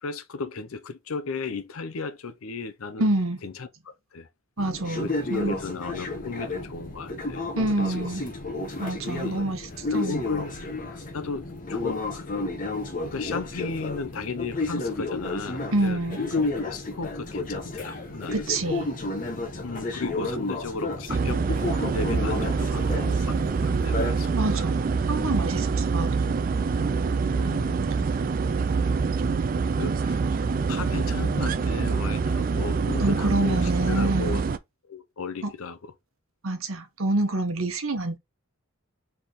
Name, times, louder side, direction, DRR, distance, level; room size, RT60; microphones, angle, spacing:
voice 1, 0.0-3.1 3.4-4.3 5.0-7.5 7.8-8.0 9.1-9.5 9.9-10.5 10.9-12.3 13.0-18.3 19.6-21.4 21.9-24.6 27.3-27.9 29.6-30.2 30.7-34.4 34.9-35.9, left 4 dB, 80° left, 0.6 m, -35 dB
voice 2, 3.0-3.4 4.6-5.6 7.6-8.3 8.8-10.2 15.7-16.2 18.3-18.9 24.3-24.8 25.1-26.1 33.0-34.4 35.4-35.5 36.4-38.2, right 2 dB, 75° right, 1.0 m, -27 dB
sound 1, 4.6-24.1, left 2 dB, 40° left, 1.0 m, -32 dB
sound 2, 17.0-34.2, equal, 15° left, 0.9 m, -46 dB
sound 3, 21.1-34.6, right 4 dB, 40° right, 0.3 m, -25 dB
4.3 x 3.5 x 3.1 m
head